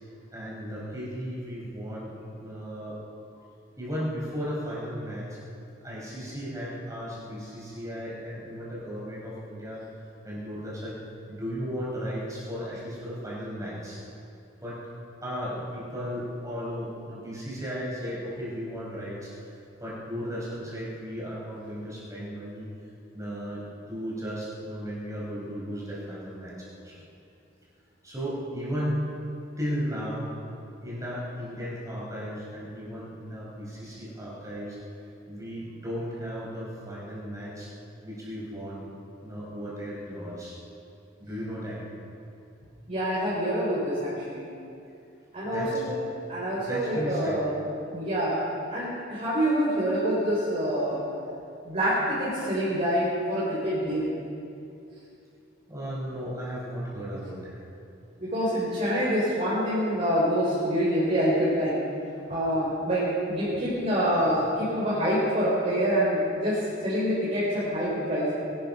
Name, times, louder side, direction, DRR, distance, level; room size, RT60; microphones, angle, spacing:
voice 1, 0.3-2.1 2.4-3.0 3.3-3.4 3.8-5.4 5.8-9.8 10.2-11.0 11.3-14.0 14.6-14.8 15.2-22.7 23.1-27.0 28.0-29.1 29.6-30.3 30.8-34.8 35.3-37.7 38.0-38.9 39.2-40.5 41.2-41.8 45.5-45.8 46.6-47.4 50.7-50.8 52.0-52.1 55.7-57.6, equal, 15° right, -6 dB, 5.0 m, -35 dB
voice 2, 42.9-44.5 45.3-45.9 46.3-47.6 47.9-48.4 48.7-51.0 51.6-54.1 58.2-61.8 62.3-68.3, equal, 35° right, -9 dB, 4.1 m, -26 dB
21.0 x 12.0 x 5.5 m, 2.6 s
head